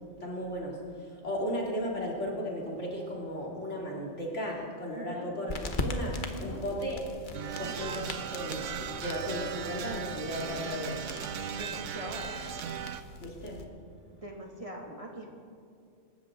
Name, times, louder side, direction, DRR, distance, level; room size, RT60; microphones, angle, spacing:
voice 1, 0.2-7.0 7.6-11.0 13.2-13.6, equal, 75° left, -3 dB, 3.5 m, -35 dB
voice 2, 4.9-5.3 6.3-6.6 7.6-7.9 11.5-12.4 14.1-15.3, right 1 dB, 30° right, -1 dB, 2.3 m, -42 dB
sound 1, 5.5-13.6, left 2 dB, 45° left, 1.3 m, -40 dB
sound 2, 7.3-13.0, right 7 dB, 90° right, 1.1 m, -37 dB
26.0 x 14.0 x 3.8 m, 2.3 s
omnidirectional pair, 1.2 m